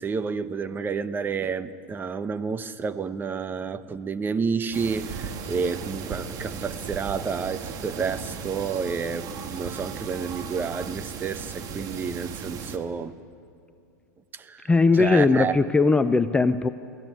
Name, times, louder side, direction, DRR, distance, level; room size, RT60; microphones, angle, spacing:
voice 1, 0.0-13.2 14.3-15.6, right 5 dB, 20° right, 12 dB, 0.9 m, -30 dB
sound 1, 4.7-12.8, right 6 dB, 40° right, 1.9 m, -36 dB
voice 2, 14.7-16.7, left 3 dB, 10° left, 11 dB, 0.5 m, -19 dB
23.5 x 16.0 x 9.1 m, 2.4 s
hypercardioid pair, 115°, 10 cm